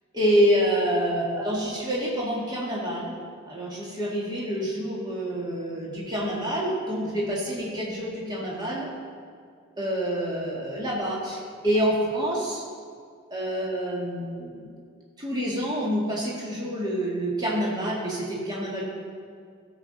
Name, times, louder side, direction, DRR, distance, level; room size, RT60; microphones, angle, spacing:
voice 1, 0.1-3.1 3.5-8.9 9.8-12.6 13.3-14.6 15.2-18.8, equal, 20° right, -5 dB, 1.9 m, -27 dB
15.5 x 7.2 x 4.1 m, 2.1 s
head